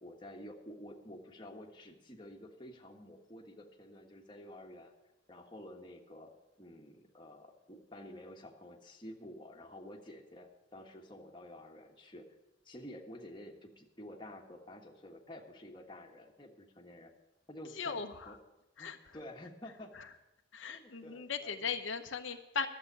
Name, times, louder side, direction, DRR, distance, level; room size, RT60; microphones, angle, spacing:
voice 1, 0.0-4.9 5.3-6.3 6.6-12.2 12.6-17.1 17.5-18.4 18.8-19.9 20.7-21.7, left 1 dB, 25° left, 0 dB, 1.5 m, -50 dB
voice 2, 17.8-18.3 18.8-19.0 20.5-22.7, left 5 dB, 80° left, 6 dB, 0.8 m, -38 dB
12.0 x 7.4 x 8.4 m, 0.96 s
head